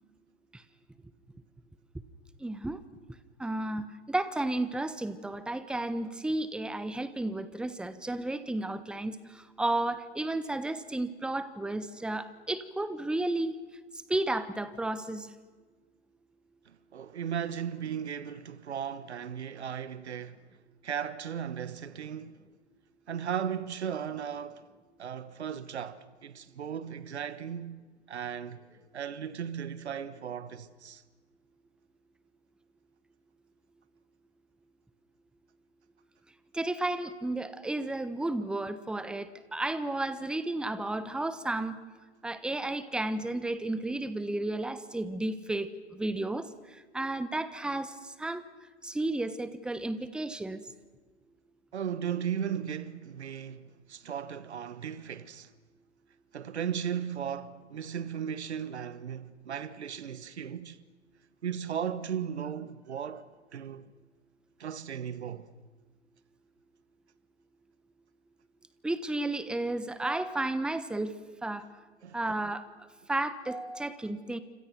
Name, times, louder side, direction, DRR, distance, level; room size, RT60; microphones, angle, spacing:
voice 1, 2.4-2.8 3.4-13.5 14.1-15.3 36.5-41.8 42.2-46.5 46.9-48.4 48.8-50.6 68.8-71.1 71.4-71.6 72.1-72.6 73.1-74.4, right 2 dB, 5° right, 1.1 m, -32 dB
voice 2, 16.7-20.4 20.8-22.4 23.1-24.6 25.0-27.8 28.1-28.6 28.9-31.0 51.7-55.5 56.3-60.8 61.4-63.8 64.6-65.5 72.0-72.2, right 8 dB, 70° right, 1.5 m, -36 dB
29.0 x 26.5 x 6.0 m
figure-of-eight pair, 115°, 34 cm